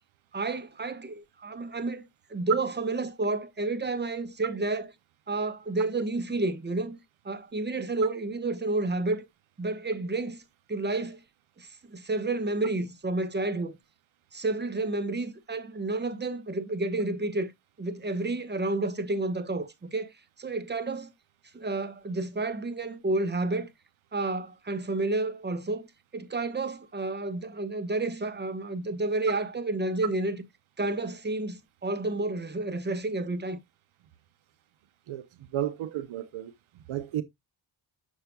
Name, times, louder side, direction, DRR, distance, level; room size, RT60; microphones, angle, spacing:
voice 1, 0.3-2.0 2.3-4.9 5.3-7.0 7.2-9.3 9.6-10.4 10.7-11.2 11.6-13.8 14.3-17.5 17.8-20.1 20.4-21.1 21.5-23.7 24.1-25.9 26.1-30.4 30.8-33.6, right 2 dB, 20° right, 1.1 m, -30 dB
voice 2, 35.5-36.5 36.9-37.2, right 12 dB, 75° right, 0.8 m, -32 dB
6.5 x 6.5 x 2.2 m
cardioid pair, 60°, 48 cm